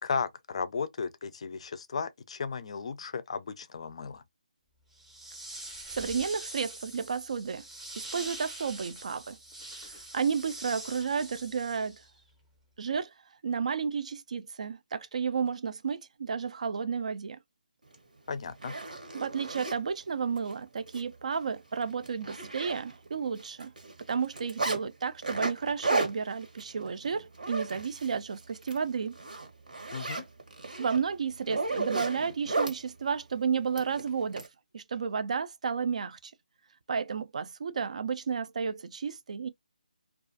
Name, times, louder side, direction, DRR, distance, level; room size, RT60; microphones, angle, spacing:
voice 1, 0.0-4.2 18.3-18.8 29.9-30.2, left 5 dB, 45° left, 0.4 m, -35 dB
sound 1, 4.9-12.2, right 1 dB, 5° right, 0.6 m, -44 dB
voice 2, 5.9-7.6 7.9-9.4 10.1-12.0 12.8-13.1 13.4-17.4 19.1-23.7 24.1-29.1 30.8-34.5 34.7-36.3 36.9-39.5, right 6 dB, 55° right, 0.3 m, -32 dB
Zipper (clothing), 17.9-18.0 18.5-19.8 20.4-20.5 20.9-21.0 21.4-21.5 21.8-23.1 23.4-24.8 25.2-28.2 28.5-28.8 29.1-32.8 33.8-34.5, right 3 dB, 80° right, 1.1 m, -34 dB
2.3 x 2.3 x 2.5 m
figure-of-eight pair, 160°, 4 cm